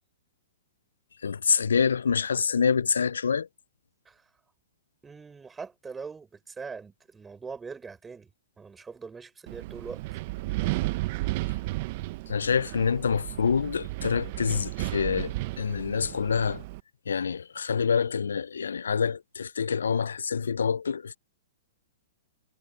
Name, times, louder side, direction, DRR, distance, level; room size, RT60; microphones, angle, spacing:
voice 1, 1.2-3.5 12.3-16.6 17.1-21.2, left 6 dB, 85° left, 0.3 m, -26 dB
voice 2, 5.0-8.3 8.6-10.0, right 5 dB, 10° right, 4.6 m, -42 dB
Wind, 9.5-16.8, right 20 dB, 50° right, 0.6 m, -33 dB
hypercardioid pair, 130°, 0 cm